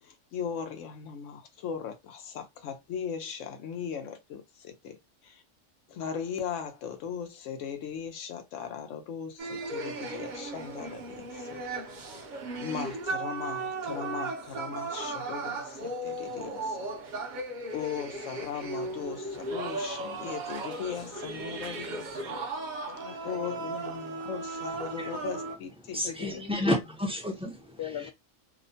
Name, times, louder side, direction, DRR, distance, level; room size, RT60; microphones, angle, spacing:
voice 1, 0.0-5.0 5.2-5.4 5.9-11.6 12.6-16.9 17.7-22.4 23.2-26.5, left 7 dB, 85° left, 1.0 m, -38 dB
sound 1, 9.4-25.6, right 2 dB, 50° right, 0.6 m, -36 dB
voice 2, 22.9-23.7 26.0-26.4 27.8-28.1, left 10 dB, 65° left, 0.7 m, -40 dB
voice 3, 25.9-28.0, left 1 dB, 10° right, 0.4 m, -31 dB
2.9 x 2.1 x 2.6 m
omnidirectional pair, 1.3 m